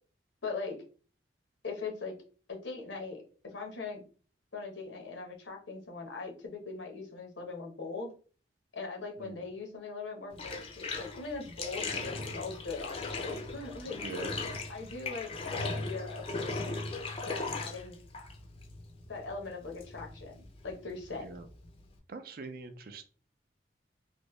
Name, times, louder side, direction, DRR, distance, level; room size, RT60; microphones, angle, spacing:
voice 1, 0.4-0.8 1.6-2.2 2.5-4.0 4.5-8.1 8.7-14.4 14.7-16.5 17.2-18.0 19.1-21.3, left 4 dB, 80° left, 2 dB, 1.0 m, -41 dB
Bathtub (filling or washing), 10.3-22.0, left 3 dB, 30° left, 0.5 m, -38 dB
voice 2, 13.9-14.4 21.2-21.5 22.1-23.1, right 3 dB, 50° right, 8 dB, 0.4 m, -44 dB
3.2 x 2.6 x 3.1 m, 0.39 s
head